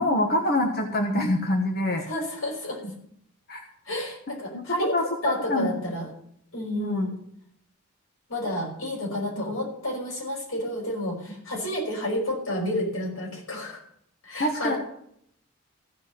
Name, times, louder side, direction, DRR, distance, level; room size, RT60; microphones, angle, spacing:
voice 1, 0.0-2.1 3.5-3.6 4.3-4.6 4.9-5.7 6.8-7.1 9.4-9.5 14.4-14.7, left 1 dB, 45° left, 2 dB, 1.2 m, -25 dB
voice 2, 2.1-2.8 3.9-5.0 5.2-6.1 6.5-7.1 8.3-13.8 14.2-14.8, left 1 dB, 90° left, -2 dB, 5.3 m, -30 dB
15.5 x 5.2 x 8.3 m, 0.69 s
head